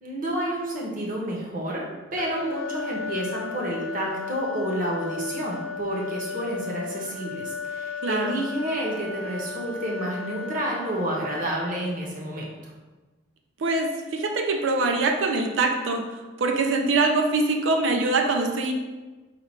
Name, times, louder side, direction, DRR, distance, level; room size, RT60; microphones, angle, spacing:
voice 1, 0.0-1.8 2.1-12.5, right 1 dB, 45° right, -3 dB, 0.9 m, -30 dB
sound 1, 2.2-12.1, left 5 dB, 85° left, 0.5 m, -35 dB
voice 2, 8.0-8.4 13.6-16.0 16.4-18.7, right 3 dB, 65° right, 3 dB, 0.4 m, -23 dB
4.3 x 2.4 x 4.4 m, 1.2 s
head